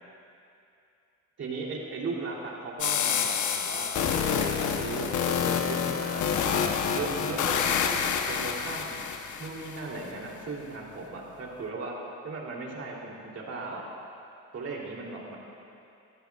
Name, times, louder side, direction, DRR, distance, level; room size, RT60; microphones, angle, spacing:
voice 1, 1.4-3.9 4.3-8.9 9.4-12.0 12.2-13.9 14.5-15.4, right 3 dB, 55° right, -2 dB, 3.2 m, -37 dB
sound 1, 2.8-9.8, left 7 dB, 75° left, 1.0 m, -28 dB
22.0 x 14.5 x 2.4 m, 2.6 s
cardioid pair, 90°, 30 cm